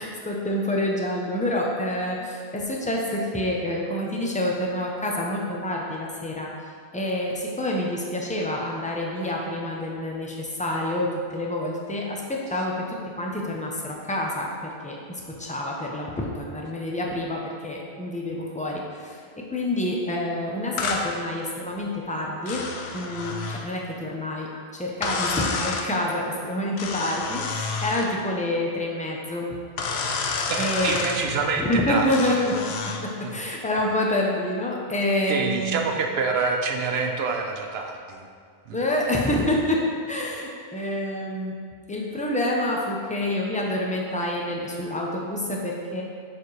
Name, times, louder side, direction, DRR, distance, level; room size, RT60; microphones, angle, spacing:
voice 1, 0.0-6.5 6.9-22.6 22.9-29.6 30.6-31.1 31.6-35.8 38.7-41.5 41.9-46.0, left 1 dB, 10° left, -1 dB, 0.5 m, -27 dB
sound 1, 20.8-21.1 22.5-23.7 25.0-25.9 26.8-28.1 29.8-31.2 32.1-33.0, left 4 dB, 90° left, 0.9 m, -29 dB
voice 2, 30.4-32.1 33.2-33.4 35.3-38.3 38.7-38.8, right 4 dB, 80° right, 3 dB, 0.9 m, -27 dB
6.9 x 4.2 x 3.2 m, 2.1 s
omnidirectional pair, 1.0 m